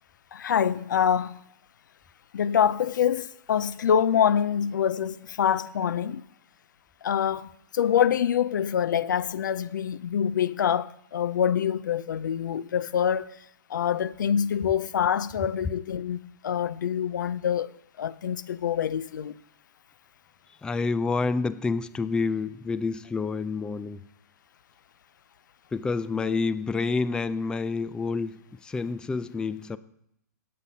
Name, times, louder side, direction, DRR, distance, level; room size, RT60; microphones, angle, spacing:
voice 1, 0.3-1.4 2.3-6.2 7.0-13.3 13.7-17.7 18.0-19.3, left 8 dB, 80° left, 0.4 m, -25 dB
voice 2, 20.6-24.0 25.7-29.8, left 4 dB, 10° left, 0.3 m, -28 dB
19.0 x 8.6 x 2.8 m
hypercardioid pair, 130°, 10 cm